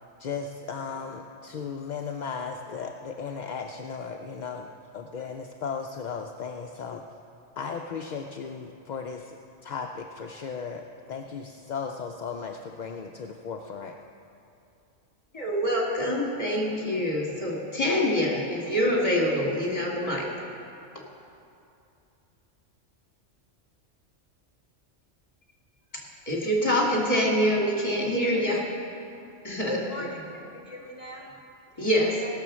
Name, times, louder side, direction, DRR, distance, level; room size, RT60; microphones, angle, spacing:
voice 1, 0.2-4.7 4.9-7.0 7.6-9.4 9.6-14.0, left 5 dB, 55° left, 3 dB, 0.5 m, -36 dB
voice 2, 15.3-20.3 26.3-28.6 29.4-29.8 31.8-32.2, equal, 30° left, -2 dB, 2.1 m, -25 dB
voice 3, 29.7-31.3 31.8-31.9 32.2-32.3, left 1 dB, 10° right, -3 dB, 2.6 m, -38 dB
18.0 x 6.8 x 6.2 m, 2.6 s
omnidirectional pair, 1.2 m